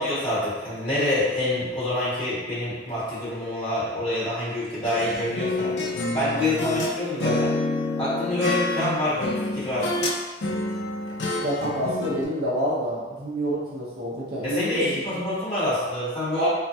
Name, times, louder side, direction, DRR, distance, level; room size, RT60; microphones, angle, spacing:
voice 1, 0.0-5.7 6.1-7.5 8.0-9.9 14.4-16.5, left 1 dB, 30° left, -12 dB, 1.4 m, -26 dB
sound 1, 4.8-6.9 7.2-10.2 10.4-12.3, left 2 dB, 65° left, 0.4 m, -28 dB
voice 2, 11.4-15.2 16.4-16.5, equal, 55° right, -6 dB, 0.6 m, -28 dB
3.3 x 2.1 x 2.7 m, 1.2 s
head